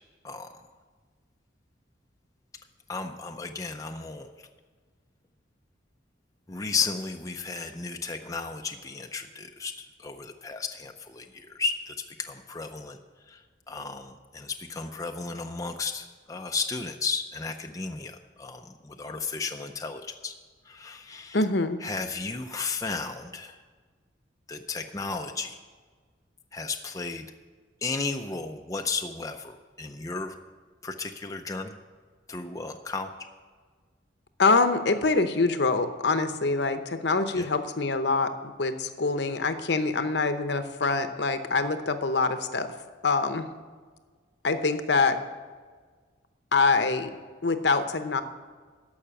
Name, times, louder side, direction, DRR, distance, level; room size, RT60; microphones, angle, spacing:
voice 1, 2.9-4.3 6.5-13.0 13.3-13.4 13.7-20.3 20.7-21.4 21.8-23.6 24.5-25.6 26.5-27.3 27.8-30.3 30.8-31.7 32.3-33.1 37.3-37.5, left 4 dB, 15° left, 4 dB, 0.5 m, -34 dB
voice 2, 21.3-21.8 34.4-42.7 43.0-43.5 44.4-45.2 46.5-47.1 47.4-48.2, left 3 dB, 60° left, 9 dB, 0.8 m, -25 dB
13.5 x 5.7 x 8.8 m, 1.5 s
head